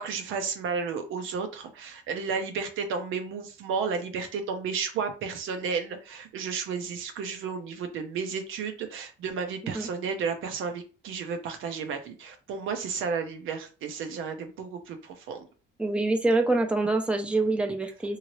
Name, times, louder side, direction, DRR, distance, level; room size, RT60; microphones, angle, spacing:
voice 1, 0.0-15.5, right 5 dB, 85° right, 0.7 m, -32 dB
voice 2, 15.8-18.2, right 2 dB, 5° right, 0.6 m, -25 dB
2.8 x 2.7 x 3.1 m
cardioid pair, 90°, 20 cm